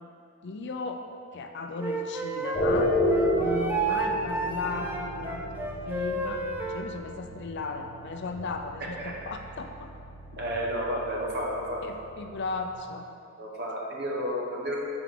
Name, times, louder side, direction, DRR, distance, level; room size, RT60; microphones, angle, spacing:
voice 1, 0.4-1.0 1.3-2.9 3.3-5.4 5.8-9.9 11.8-13.0, left 3 dB, 50° left, 5 dB, 0.5 m, -36 dB
sound 1, 1.2-11.8, left 1 dB, 80° right, 1.1 m, -54 dB
Wind instrument woodwind instrument, 1.8-6.9, right 3 dB, 10° right, 0.5 m, -31 dB
sound 2, 2.5-12.7, equal, 30° left, 1.1 m, -32 dB
voice 2, 8.8-9.1 10.4-11.8 13.4-14.8, equal, 50° right, -2 dB, 1.0 m, -31 dB
6.9 x 4.7 x 3.7 m, 2.4 s
head